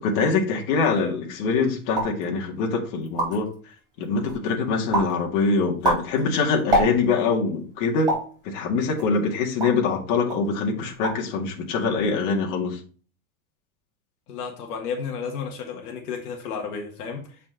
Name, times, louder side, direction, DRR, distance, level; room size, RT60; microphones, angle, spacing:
voice 1, 0.0-3.5 4.0-8.1 8.4-12.8, left 4 dB, 60° left, 1 dB, 2.0 m, -24 dB
sound 1, 1.9-2.2 2.7-2.8 3.0-3.5 4.0-4.5 4.9-5.2 5.6-7.3 8.1-8.4 9.0-9.9 10.3-10.5 10.8-11.3 11.6-12.1, right 1 dB, 10° right, 3.4 m, -26 dB
voice 2, 14.3-17.4, left 6 dB, 85° left, 1 dB, 1.7 m, -32 dB
7.6 x 4.4 x 3.9 m, 0.39 s
supercardioid pair, 150°, 44 cm